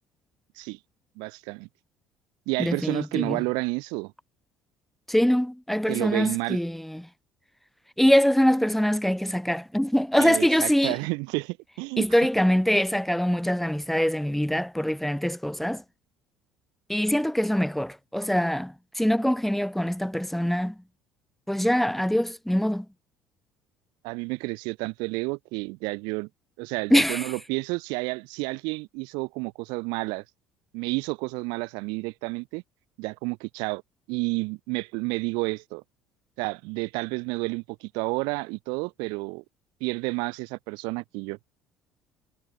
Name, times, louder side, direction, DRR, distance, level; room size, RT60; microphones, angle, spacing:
voice 1, 1.2-1.7 2.5-4.1 5.9-6.6 10.2-12.1 24.0-26.3 26.6-30.2 30.7-32.6 33.0-33.8 34.1-35.8 36.4-39.4 39.8-41.4, right 29 dB, 80° right, 2.4 m, -30 dB
voice 2, 2.6-3.4 5.1-7.0 8.0-10.9 12.0-15.8 16.9-20.7 21.5-22.9 26.9-27.2, equal, ahead, 4.0 m, -23 dB
supercardioid pair, 80°, 7 cm